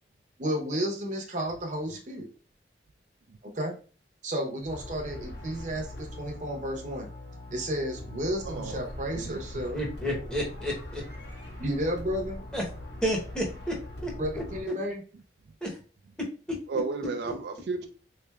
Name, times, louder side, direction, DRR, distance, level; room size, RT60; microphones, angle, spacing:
voice 1, 0.4-2.3 3.4-3.7 4.2-7.1 7.5-9.8 11.6-12.4 14.2-15.0, equal, 45° right, 2 dB, 0.7 m, -32 dB
sound 1, 4.7-14.6, left 1 dB, 70° left, 1.3 m, -41 dB
voice 2, 8.5-8.8 9.1-9.4 16.7-17.9, right 4 dB, 65° right, 6 dB, 0.3 m, -33 dB
voice 3, 9.7-11.0 12.5-12.6 13.0-13.7 14.0-14.1 15.6-15.7, equal, 5° left, -2 dB, 0.8 m, -30 dB
3.6 x 3.2 x 2.2 m, 0.38 s
head